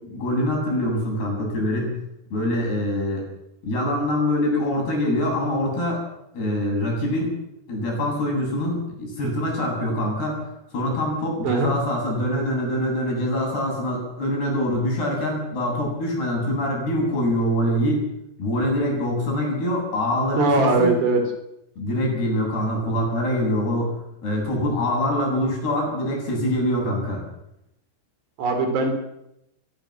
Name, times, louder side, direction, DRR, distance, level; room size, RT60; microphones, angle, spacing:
voice 1, 0.0-2.0 2.3-3.3 3.6-6.0 6.3-7.4 7.7-10.4 10.7-18.0 18.4-21.0 21.8-27.2, left 1 dB, 70° left, 0 dB, 9.9 m, -24 dB
voice 2, 20.3-21.2 28.4-28.9, right 3 dB, 80° right, 5 dB, 5.9 m, -20 dB
22.0 x 20.0 x 7.5 m, 0.85 s
omnidirectional pair, 4.8 m